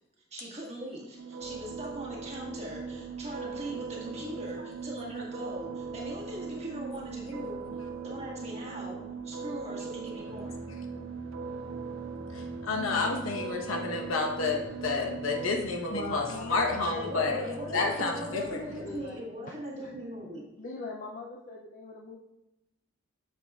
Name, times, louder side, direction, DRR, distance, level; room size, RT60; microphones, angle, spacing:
voice 1, 0.3-7.6 8.0-10.5 17.0-20.4, right 1 dB, 30° right, -4 dB, 1.7 m, -40 dB
sound 1, 1.2-15.5, right 5 dB, 75° right, 0.4 m, -40 dB
sound 2, 1.4-19.0, right 1 dB, 5° left, 2.7 m, -50 dB
voice 2, 12.3-17.4 17.7-18.6, left 3 dB, 85° left, 3 dB, 1.1 m, -30 dB
voice 3, 15.9-19.2 19.8-19.9 20.6-22.2, left 2 dB, 40° left, -1 dB, 0.5 m, -41 dB
9.1 x 6.7 x 2.4 m, 0.93 s
head